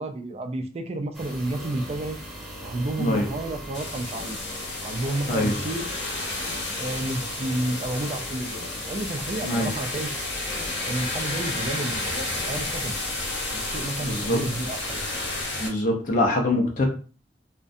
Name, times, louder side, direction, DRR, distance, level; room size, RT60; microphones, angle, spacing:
voice 1, 0.0-2.2 2.6-4.4 4.8-5.9 6.8-10.1 10.8-13.0 13.5-15.1, right 2 dB, 35° right, 6 dB, 0.3 m, -31 dB
sound 1, 1.1-15.5, equal, ahead, 0.8 m, -39 dB
sound 2, 3.7-15.7, left 2 dB, 90° left, 0.7 m, -32 dB
voice 2, 5.3-5.6 9.4-9.7 14.0-14.4 15.6-16.9, left 1 dB, 45° left, 1 dB, 0.5 m, -24 dB
2.6 x 2.1 x 2.5 m, 0.39 s
head